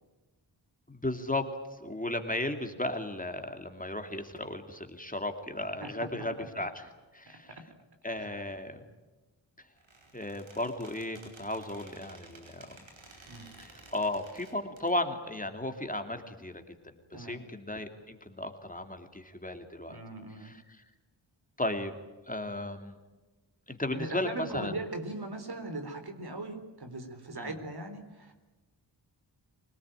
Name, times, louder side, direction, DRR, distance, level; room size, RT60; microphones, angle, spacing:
voice 1, 0.9-1.5 1.8-6.9 7.1-7.5 8.0-8.8 10.1-12.8 13.6-16.6 17.1-20.0 20.4-20.6 21.6-21.9 22.3-23.0 23.7-24.8 27.4-27.6, left 1 dB, 20° left, 6 dB, 2.8 m, -35 dB
voice 2, 5.8-6.3 7.5-7.6 8.2-8.4 13.3-13.5 17.1-17.4 19.9-20.5 23.9-28.3, right 2 dB, 55° right, 6 dB, 4.0 m, -40 dB
Squeak, 9.8-14.9, right 3 dB, 90° right, 4.9 m, -54 dB
25.5 x 18.5 x 9.2 m, 1.2 s
wide cardioid pair, 60°, 45 cm